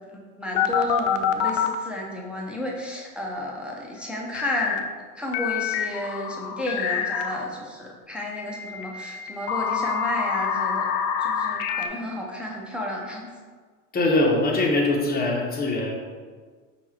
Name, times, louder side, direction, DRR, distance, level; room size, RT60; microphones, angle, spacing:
voice 1, 0.4-4.8 5.2-10.9 11.2-13.3, left 1 dB, ahead, -3 dB, 0.5 m, -32 dB
sound 1, 0.5-1.8 4.3-4.8 5.3-7.4 8.3-11.9, left 8 dB, 60° left, 0.5 m, -26 dB
voice 2, 13.9-15.9, left 2 dB, 20° left, -1 dB, 0.9 m, -22 dB
5.3 x 2.4 x 3.1 m, 1.5 s
hypercardioid pair, 95°, 46 cm